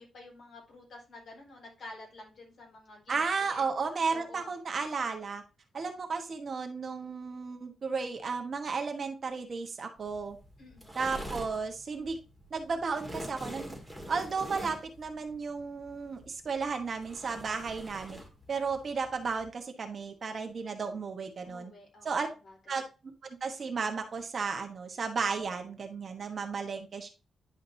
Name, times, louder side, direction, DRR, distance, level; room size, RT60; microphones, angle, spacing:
voice 1, 0.0-3.6 4.1-4.5 5.7-5.9 10.6-10.9 21.4-22.2 22.4-22.5, left 2 dB, 55° left, -1 dB, 4.2 m, -50 dB
voice 2, 3.1-5.4 5.7-10.4 10.9-12.2 12.5-13.8 14.1-18.2 18.5-21.7 22.0-22.3 22.7-22.8 23.4-27.1, right 5 dB, 45° right, 5 dB, 1.3 m, -34 dB
sound 1, 10.0-19.5, equal, ahead, 1.8 m, -46 dB
10.5 x 5.1 x 2.7 m, 0.30 s
wide cardioid pair, 135°, 0 cm